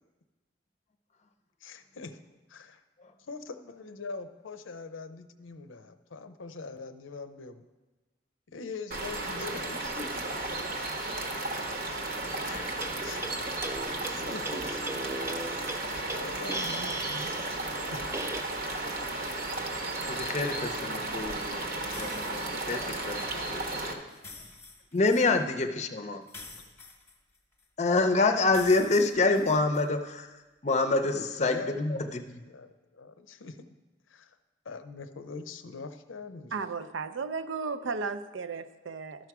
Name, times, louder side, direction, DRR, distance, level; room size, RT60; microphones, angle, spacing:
voice 1, 1.6-2.2 2.5-2.8 3.2-7.6 8.5-10.4 13.0-13.2 14.1-18.1 26.6-26.7 31.1-33.7 34.1-34.4 34.6-36.6, left 4 dB, 85° left, 9 dB, 0.6 m, -43 dB
sound 1, 8.9-23.9, right 2 dB, 50° right, 0.9 m, -34 dB
voice 2, 12.4-13.0 20.1-21.6 22.0-22.4 22.7-24.0 24.9-26.2 27.8-30.3 30.6-32.4, left 3 dB, 35° left, 7 dB, 0.6 m, -27 dB
sound 2, 12.6-18.4, right 2 dB, 15° right, 0.3 m, -38 dB
sound 3, 21.9-22.8 24.1-25.3 26.3-27.6 28.5-29.8, left 3 dB, 10° left, 1.0 m, -47 dB
voice 3, 36.5-39.3, right 4 dB, 80° right, 11 dB, 0.5 m, -34 dB
12.5 x 4.6 x 6.0 m, 1.2 s
head